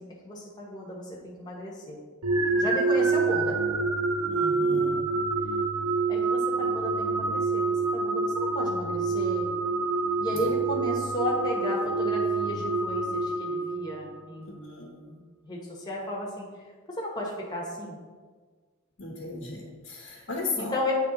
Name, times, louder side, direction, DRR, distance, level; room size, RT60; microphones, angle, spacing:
voice 1, 0.0-2.0 2.6-3.6 6.1-9.5 10.2-16.5 16.9-18.0 20.6-20.9, equal, 20° left, -3 dB, 1.0 m, -34 dB
sound 1, 2.2-14.2, right 3 dB, 75° right, 0.7 m, -27 dB
voice 2, 4.2-5.1 10.3-10.4 14.6-14.9 19.0-20.8, left 3 dB, 60° left, -3 dB, 0.9 m, -35 dB
8.2 x 3.3 x 3.9 m, 1.5 s
head